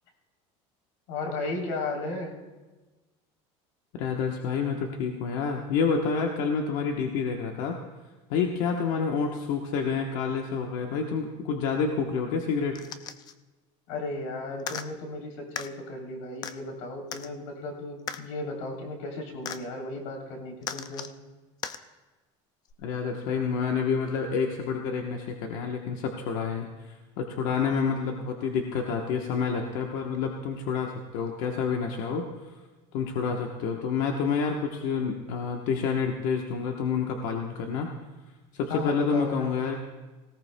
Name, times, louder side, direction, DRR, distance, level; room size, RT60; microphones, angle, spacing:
voice 1, 1.1-2.4 13.9-21.1 38.7-39.5, left 2 dB, 90° left, 1 dB, 3.3 m, -35 dB
voice 2, 3.9-7.8 8.3-12.8 22.8-32.5 32.9-37.9 38.5-39.8, left 5 dB, 60° left, 2 dB, 1.1 m, -28 dB
sound 1, 12.7-13.3 14.6-14.9 15.6-15.7 16.4-16.5 17.1-17.3 18.1-18.2 19.5-19.6 20.6-21.1 21.6-21.8 22.7-22.8, left 8 dB, 25° left, 0.4 m, -36 dB
18.5 x 17.5 x 2.2 m, 1.2 s
cardioid pair, 170°, 15 cm